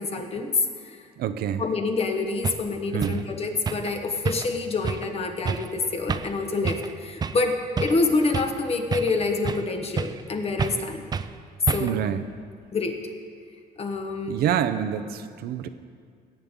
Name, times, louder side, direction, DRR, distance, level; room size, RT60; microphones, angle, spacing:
voice 1, 0.0-1.0 1.6-11.1 11.7-12.0 12.7-13.0 13.8-14.4, left 3 dB, 35° left, 4 dB, 1.2 m, -27 dB
voice 2, 1.2-1.6 2.9-3.2 11.8-12.2 14.3-15.7, right 9 dB, 70° right, 10 dB, 0.6 m, -27 dB
sound 1, 2.0-2.1 2.4-2.6 3.0-3.2 3.6-3.9 4.2-4.6 4.8-5.1 5.4-5.7 6.1-6.4 6.6-6.9 7.2-7.4 7.8-8.6 8.9-9.7 10.0-10.3 10.6-10.8 11.1-11.3 11.7-12.0, right 6 dB, 25° right, 0.4 m, -29 dB
17.5 x 8.1 x 3.7 m, 2.1 s
cardioid pair, 110°, 17 cm